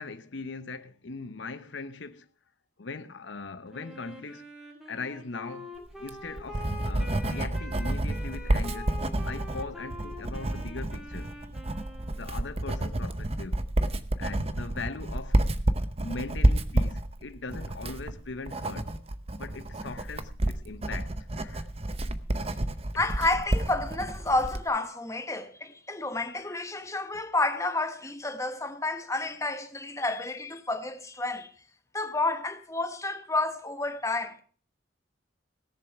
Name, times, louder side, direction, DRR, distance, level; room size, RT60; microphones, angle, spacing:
voice 1, 0.0-2.3 2.8-4.4 4.9-5.7 6.0-9.0 9.2-11.3 12.2-13.6 14.2-15.4 16.0-18.9 19.4-21.7 26.4-26.6 30.1-30.2, left 3 dB, 70° left, 0.8 m, -40 dB
Wind instrument woodwind instrument, 3.7-12.5, left 1 dB, ahead, 2.5 m, -45 dB
Writing, 5.9-24.7, right 1 dB, 30° right, 0.8 m, -30 dB
voice 2, 22.9-31.5 31.9-34.4, left 2 dB, 15° left, 1.2 m, -30 dB
16.5 x 7.2 x 5.8 m
head